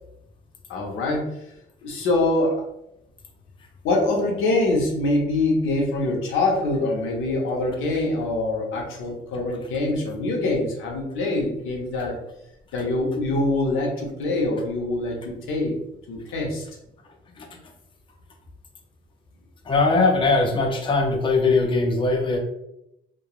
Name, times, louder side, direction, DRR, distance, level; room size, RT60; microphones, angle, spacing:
voice 1, 0.7-1.3 1.8-2.6 3.8-12.1 12.7-15.7 16.1-16.6, left 2 dB, 90° left, 0 dB, 0.7 m, -24 dB
voice 2, 19.7-22.4, left 3 dB, 25° left, 2 dB, 0.5 m, -20 dB
3.0 x 2.3 x 2.3 m, 0.82 s
cardioid pair, 90°, 20 cm